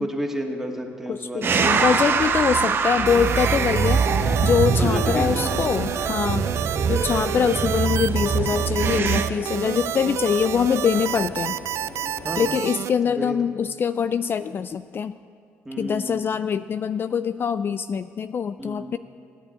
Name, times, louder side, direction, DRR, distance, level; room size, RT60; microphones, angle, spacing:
voice 1, 0.0-1.9 4.8-5.7 12.2-12.6 13.1-13.4 15.7-16.3 18.6-18.9, right 1 dB, 5° right, 1 dB, 2.0 m, -31 dB
voice 2, 1.1-6.4 6.9-11.6 12.3-15.2 15.8-19.0, left 7 dB, 45° left, 13 dB, 0.3 m, -24 dB
sound 1, 1.4-9.2, right 5 dB, 50° right, 1.1 m, -23 dB
sound 2, 3.1-12.9, right 11 dB, 70° right, 0.4 m, -29 dB
sound 3, 3.5-12.6, left 3 dB, 85° left, 1.7 m, -39 dB
16.0 x 8.8 x 8.9 m, 2.3 s
cardioid pair, 90°, 5 cm